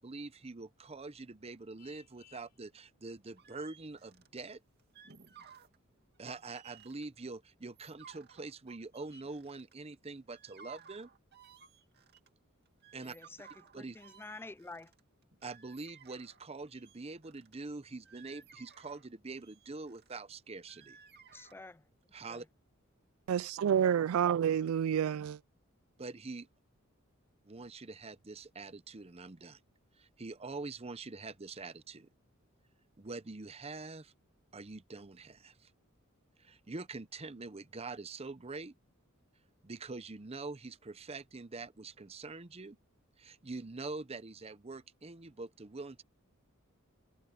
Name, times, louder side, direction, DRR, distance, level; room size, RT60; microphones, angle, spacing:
voice 1, 0.0-4.6 6.2-11.1 12.9-13.2 13.7-14.0 15.4-21.0 22.1-22.5 26.0-26.5 27.4-29.6 30.0-32.1 33.0-34.1 34.5-35.7 36.4-38.7 39.6-42.8 43.2-46.0, right 3 dB, 30° right, 0.7 m, -45 dB
Vehicle horn car horn honking, 1.8-2.6, left 12 dB, 90° left, 4.7 m, -61 dB
sound 1, 3.4-4.4 4.8-5.8 6.2-7.1 7.6-9.9 10.3-12.3 12.7-16.4 16.7-17.5 17.9-20.2 20.7-21.5, right 6 dB, 50° right, 2.3 m, -57 dB
voice 2, 13.0-13.5 13.7-14.9 21.3-21.8 22.3-22.4, left 3 dB, 10° left, 0.3 m, -49 dB
voice 3, 23.3-25.4, right 8 dB, 75° right, 0.3 m, -29 dB
head